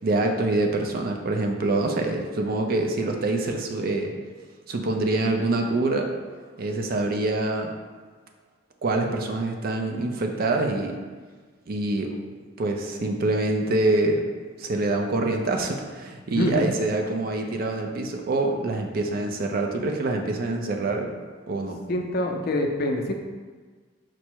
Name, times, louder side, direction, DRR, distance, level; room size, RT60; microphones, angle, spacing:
voice 1, 0.0-4.1 4.7-6.1 6.6-7.7 8.8-11.0 11.7-12.1 12.6-14.3 14.6-21.1 21.5-21.8, right 2 dB, 55° right, 3 dB, 0.4 m, -25 dB
voice 2, 16.4-16.7 21.9-23.1, left 1 dB, 55° left, 3 dB, 0.4 m, -25 dB
4.5 x 2.0 x 4.4 m, 1.4 s
head